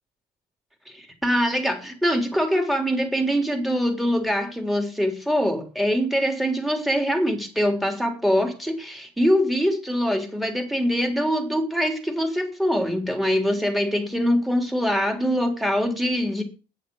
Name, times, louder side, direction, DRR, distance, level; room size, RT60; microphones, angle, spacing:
voice 1, 0.9-16.4, equal, ahead, 3.6 m, -23 dB
9.8 x 7.9 x 7.9 m
cardioid pair, 110°, 17 cm